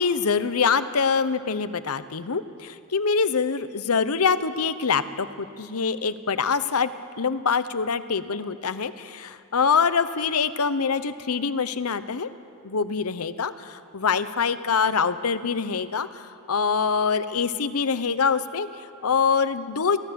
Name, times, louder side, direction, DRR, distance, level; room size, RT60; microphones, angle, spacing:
voice 1, 0.0-6.9 7.2-12.3 12.6-20.0, left 5 dB, 75° left, 13 dB, 0.8 m, -25 dB
23.0 x 16.0 x 7.0 m, 2.4 s
head